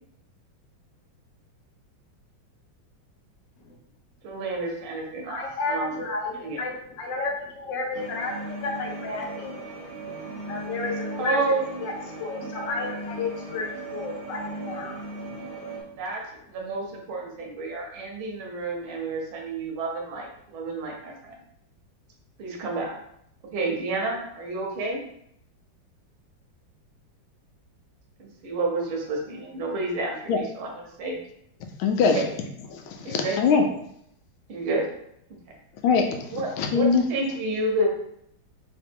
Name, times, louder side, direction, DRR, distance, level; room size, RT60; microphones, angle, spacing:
voice 1, 4.2-6.0 6.4-6.6 11.2-11.6 15.9-21.3 22.4-22.9 23.5-25.0 28.2-30.7 31.0-31.2 32.1-32.2 33.0-33.4 34.5-34.9 36.3-37.9, right 2 dB, 90° right, 1 dB, 1.8 m, -30 dB
voice 2, 5.3-8.3 8.6-9.8 10.5-11.9 12.2-15.0 15.6-15.7, left 3 dB, 70° left, 1 dB, 1.3 m, -32 dB
sound 1, 7.9-15.8, right 2 dB, 45° right, 1.3 m, -37 dB
voice 3, 31.8-32.2 32.7-33.7 35.8-37.3, left 5 dB, 90° left, 5 dB, 1.4 m, -23 dB
3.8 x 2.9 x 3.5 m, 0.72 s
omnidirectional pair, 2.2 m